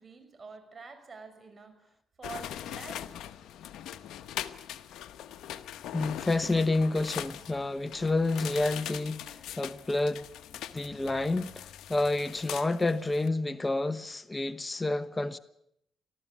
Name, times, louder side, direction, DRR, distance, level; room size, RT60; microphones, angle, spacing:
voice 1, 0.0-3.2 7.4-7.5, right 4 dB, 40° right, 5.5 m, -47 dB
sound 1, 2.2-13.3, left 11 dB, 80° left, 1.0 m, -41 dB
voice 2, 5.9-10.3 10.7-15.4, left 2 dB, 20° left, 1.0 m, -29 dB
20.0 x 14.0 x 9.8 m
cardioid pair, 75°, 0 cm